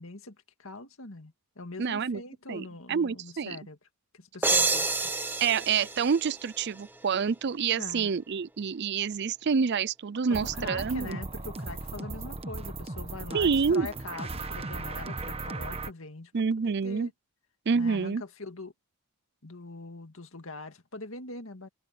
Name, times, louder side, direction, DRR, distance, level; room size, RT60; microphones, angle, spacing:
voice 1, 0.0-3.8 4.1-5.1 7.7-8.1 10.3-16.3 16.6-17.1 17.7-18.7 19.4-21.7, left 3 dB, 65° left, 2.1 m, -42 dB
voice 2, 1.8-2.2 2.5-3.6 5.4-11.2 13.3-13.9 16.3-17.1 17.7-18.2, right 6 dB, 50° right, 0.4 m, -27 dB
sound 1, 4.4-7.1, right 3 dB, 10° right, 1.1 m, -29 dB
sound 2, 10.3-15.9, right 2 dB, 25° right, 1.1 m, -37 dB
head